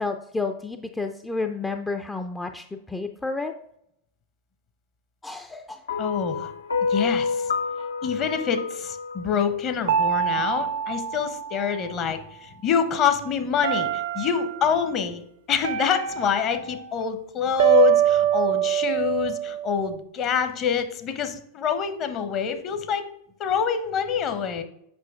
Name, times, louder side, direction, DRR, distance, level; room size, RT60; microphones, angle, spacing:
voice 1, 0.0-3.5 5.2-5.8, left 3 dB, 10° left, 5 dB, 0.3 m, -30 dB
sound 1, 5.9-10.2, left 4 dB, 70° left, 0.5 m, -29 dB
voice 2, 6.0-6.5 6.9-7.5 8.0-15.2 15.5-23.1 23.4-24.6, left 7 dB, 35° left, 8 dB, 0.7 m, -26 dB
sound 2, 9.9-12.2 13.6-14.6 15.6-16.9 17.6-20.0, right 10 dB, 60° right, 0.4 m, -24 dB
7.5 x 5.5 x 2.4 m, 0.73 s
figure-of-eight pair, 90°, 0 cm